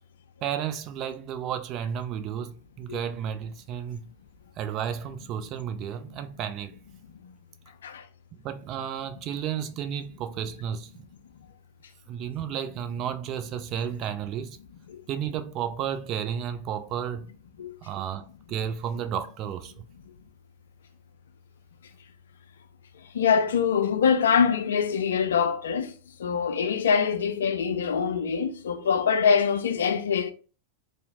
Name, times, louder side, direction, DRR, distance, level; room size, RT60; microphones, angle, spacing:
voice 1, 0.4-4.1 4.6-6.7 8.3-10.9 12.1-14.6 15.1-17.3 17.8-19.8, right 9 dB, 35° right, 0.3 m, -32 dB
voice 2, 23.1-25.9 26.2-30.3, left 6 dB, 65° left, 0.3 m, -24 dB
2.7 x 2.0 x 2.7 m
figure-of-eight pair, 90°, 0 cm